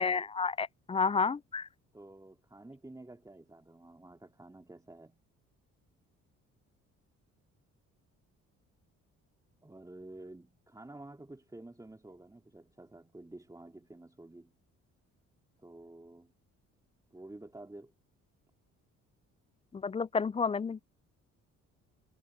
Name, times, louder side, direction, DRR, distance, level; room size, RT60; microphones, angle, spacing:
voice 1, 0.0-1.7 19.7-20.8, left 5 dB, 20° left, 0.4 m, -31 dB
voice 2, 1.9-5.2 9.6-14.5 15.6-16.3 17.1-17.9, right 2 dB, 10° right, 3.3 m, -50 dB
cardioid pair, 90°, 30 cm